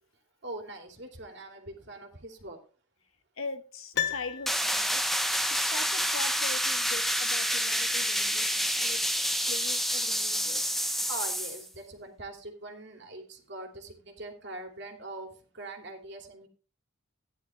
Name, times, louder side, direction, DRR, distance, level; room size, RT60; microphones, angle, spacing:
voice 1, 0.4-2.7 11.1-16.5, right 2 dB, 55° right, 4 dB, 2.7 m, -42 dB
voice 2, 3.4-5.0 5.6-9.0 9.4-10.8, left 3 dB, 85° left, 9 dB, 1.5 m, -41 dB
Piano, 3.9-5.2 5.5-5.6, left 10 dB, 55° left, 0.9 m, -34 dB
sound 1, 4.5-11.6, equal, ahead, 0.9 m, -28 dB
16.5 x 10.5 x 2.4 m, 0.36 s
head